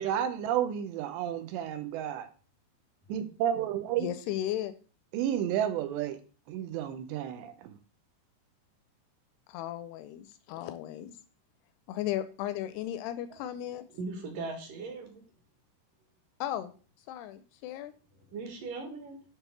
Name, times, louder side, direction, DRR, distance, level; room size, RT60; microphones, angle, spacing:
voice 1, 0.0-2.3 3.1-4.1 5.1-6.2 6.5-7.8, right 10 dB, 85° right, 9 dB, 3.2 m, -31 dB
voice 2, 4.0-4.7 9.5-11.1 11.9-13.8 16.4-16.7 17.1-17.9, left 12 dB, 80° left, 12 dB, 2.5 m, -35 dB
voice 3, 13.9-15.2 18.3-19.2, right 3 dB, 60° right, 4 dB, 2.9 m, -38 dB
10.0 x 3.9 x 6.0 m, 0.37 s
omnidirectional pair, 4.9 m